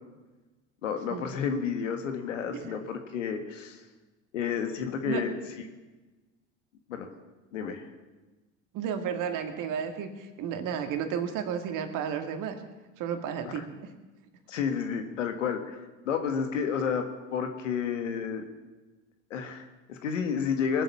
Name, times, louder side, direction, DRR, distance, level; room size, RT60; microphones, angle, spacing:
voice 1, 0.8-3.8 4.3-5.3 6.9-7.1 7.5-7.9 13.5-13.6 14.5-17.0 17.3-18.4 19.3-20.8, left 7 dB, 85° left, 6 dB, 1.8 m, -31 dB
voice 2, 8.7-12.5 13.0-13.7, right 8 dB, 55° right, 6 dB, 2.2 m, -32 dB
21.5 x 8.0 x 7.0 m, 1.2 s
hypercardioid pair, 80°, 36 cm